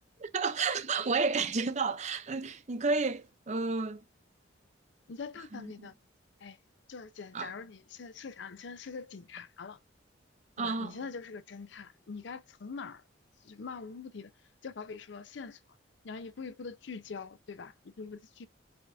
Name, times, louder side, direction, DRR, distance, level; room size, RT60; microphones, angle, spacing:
voice 1, 0.2-4.0 5.5-5.9 7.3-7.5 10.6-11.0, right 4 dB, 35° right, 0.5 m, -31 dB
voice 2, 5.1-5.9 6.4-6.6 6.9-9.8 10.6-13.0 13.4-14.3 14.6-15.6 16.0-18.5, left 5 dB, 65° left, 0.5 m, -43 dB
7.7 x 2.6 x 2.3 m
head